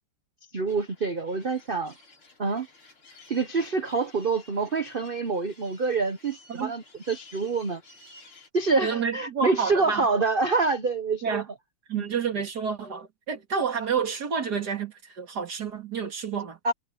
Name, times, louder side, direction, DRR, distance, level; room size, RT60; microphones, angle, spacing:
voice 1, 0.5-1.9 2.4-2.7 3.3-7.8 8.5-11.4 11.9-12.0 16.6-16.7, right 4 dB, 85° right, 0.4 m, -26 dB
sound 1, 0.7-8.5, left 2 dB, 75° left, 6.1 m, -54 dB
voice 2, 8.8-10.2 11.2-11.5 11.9-16.6, right 6 dB, 50° right, 2.8 m, -29 dB
omnidirectional pair, 2.3 m